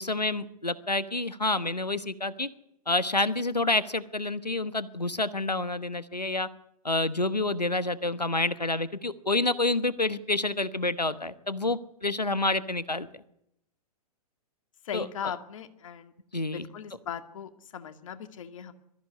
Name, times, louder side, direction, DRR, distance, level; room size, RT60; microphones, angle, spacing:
voice 1, 0.0-2.5 2.9-6.5 6.8-13.1 14.9-15.3 16.3-16.7, left 2 dB, 90° left, 15 dB, 1.2 m, -28 dB
voice 2, 14.9-16.1 16.5-18.7, left 8 dB, 55° left, 9 dB, 2.0 m, -38 dB
22.0 x 14.0 x 9.7 m, 0.79 s
figure-of-eight pair, 115°, 20 cm